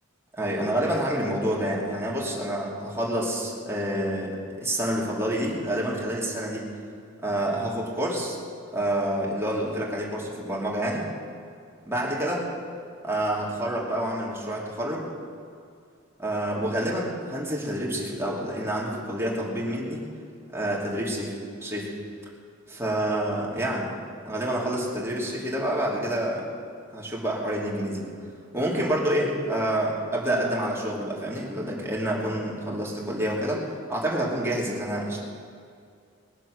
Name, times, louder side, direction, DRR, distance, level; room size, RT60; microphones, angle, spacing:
voice 1, 0.3-6.7 7.2-8.4 8.7-11.0 11.9-12.4 13.0-15.1 16.2-20.0 20.5-21.9 22.7-23.9 24.2-26.5 26.9-28.1 28.5-33.6 33.9-35.2, right 1 dB, 15° right, -4 dB, 2.8 m, -28 dB
20.5 x 7.4 x 6.5 m, 2.3 s
head